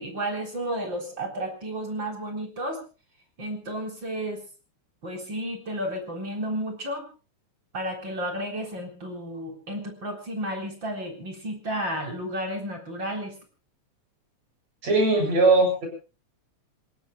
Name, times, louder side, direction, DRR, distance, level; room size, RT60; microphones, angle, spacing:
voice 1, 0.0-2.8 3.4-4.4 5.0-7.0 7.7-13.4, right 1 dB, 40° right, 3 dB, 4.4 m, -32 dB
voice 2, 14.8-15.9, right 2 dB, 60° right, 3 dB, 8.8 m, -20 dB
28.5 x 17.5 x 2.3 m, 0.35 s
omnidirectional pair, 3.3 m